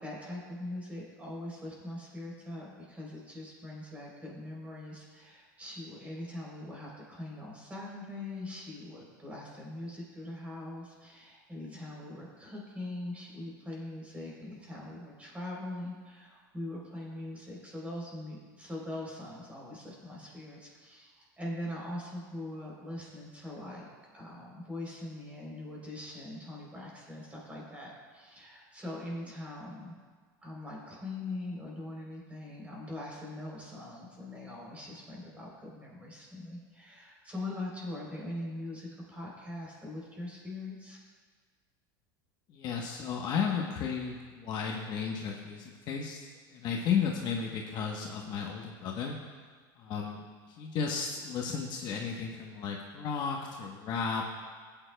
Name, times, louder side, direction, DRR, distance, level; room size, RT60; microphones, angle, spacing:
voice 1, 0.0-23.9 24.1-30.0 30.4-41.0, left 1 dB, 10° right, -3 dB, 3.3 m, -42 dB
voice 2, 42.5-46.2 46.5-49.2 49.8-50.2 50.5-54.2, left 6 dB, 40° left, 0 dB, 1.0 m, -33 dB
17.0 x 8.9 x 2.2 m, 1.5 s
supercardioid pair, 135°, 11 cm